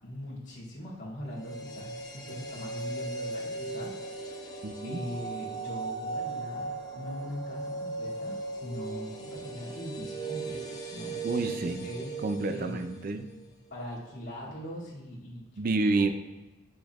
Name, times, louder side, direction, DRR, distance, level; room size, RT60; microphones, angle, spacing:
voice 1, 0.0-4.6 4.8-12.1 12.5-12.8 13.7-15.4 15.7-16.1, equal, 60° left, -8 dB, 2.4 m, -41 dB
sound 1, 1.3-13.4 13.7-13.8, right 3 dB, 15° left, 0.7 m, -38 dB
voice 2, 4.6-5.0 11.2-11.9 12.2-13.3 15.6-16.1, right 3 dB, 45° right, 8 dB, 0.4 m, -29 dB
8.2 x 6.2 x 2.4 m, 1.0 s
head